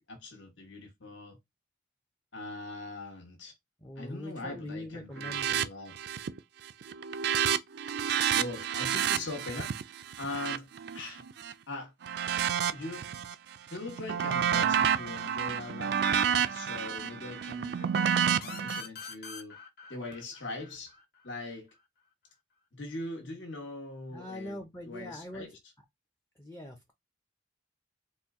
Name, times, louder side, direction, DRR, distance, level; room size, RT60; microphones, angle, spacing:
voice 1, 0.1-1.4 2.3-3.5 4.0-5.9 8.3-9.7 10.2-10.7 10.9-11.2 11.7-11.9 12.7-13.1 13.7-19.6 19.9-20.9 21.2-21.7 22.7-25.6, left 2 dB, 70° left, 1.2 m, -41 dB
voice 2, 3.8-5.6 24.1-25.6 26.4-26.9, left 1 dB, 15° left, 0.5 m, -42 dB
sound 1, 5.2-5.7 5.9-6.4 6.7-11.5 12.0-13.3 13.7-18.8, right 8 dB, 55° right, 0.3 m, -30 dB
sound 2, 18.4-21.8, left 5 dB, 50° left, 0.8 m, -46 dB
4.2 x 2.2 x 3.6 m
head